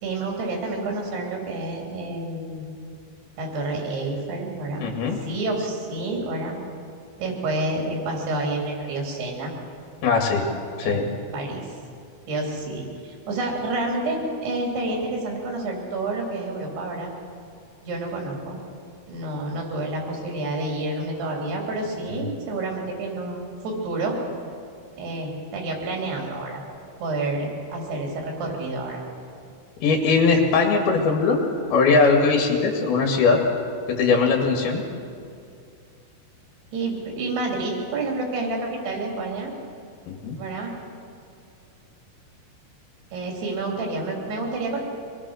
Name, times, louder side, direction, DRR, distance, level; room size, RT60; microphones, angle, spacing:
voice 1, 0.0-2.7 3.4-4.9 5.2-6.6 7.2-9.5 10.8-11.0 11.3-11.8 12.3-17.1 17.8-18.6 19.1-24.2 25.0-26.6 27.0-29.0 36.7-39.5 40.4-40.8 43.1-44.8, right 2 dB, 90° right, 0 dB, 5.4 m, -29 dB
voice 2, 4.8-5.2 10.0-10.4 10.8-11.1 29.8-31.4 31.7-33.4 33.9-34.8 40.1-40.4, left 4 dB, 70° left, 1 dB, 3.8 m, -20 dB
24.0 x 20.0 x 6.4 m, 2.5 s
omnidirectional pair, 4.6 m